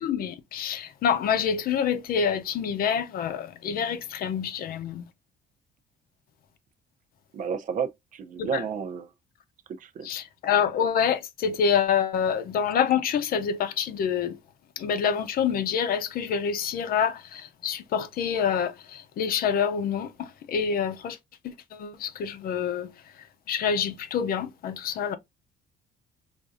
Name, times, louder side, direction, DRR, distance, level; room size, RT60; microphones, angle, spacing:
voice 1, 0.0-5.0 8.4-8.6 10.0-14.3 14.8-18.7 19.2-20.1 20.5-21.2 21.8-22.9 23.5-25.2, left 7 dB, 60° left, 0.7 m, -26 dB
voice 2, 7.3-9.1 9.8-10.1, right 6 dB, 50° right, 0.6 m, -31 dB
4.9 x 2.6 x 2.5 m
cardioid pair, 110°, 17 cm